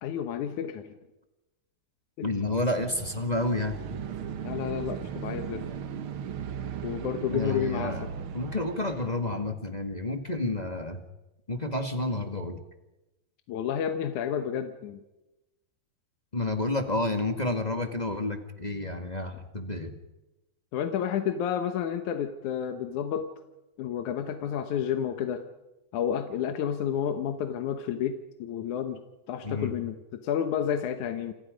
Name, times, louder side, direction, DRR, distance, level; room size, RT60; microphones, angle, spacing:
voice 1, 0.0-0.9 2.2-2.3 4.4-5.7 6.8-8.1 13.5-15.0 20.7-23.3 23.8-25.4 25.9-29.0 29.3-31.3, left 8 dB, 80° left, 7 dB, 2.6 m, -30 dB
voice 2, 2.2-3.8 7.3-8.0 8.3-11.0 11.5-12.6 16.3-20.0 29.4-29.7, left 2 dB, 20° left, 5 dB, 1.4 m, -30 dB
sound 1, 2.8-9.2, right 8 dB, 55° right, 1.7 m, -37 dB
29.0 x 27.5 x 5.2 m, 1.0 s
omnidirectional pair, 3.4 m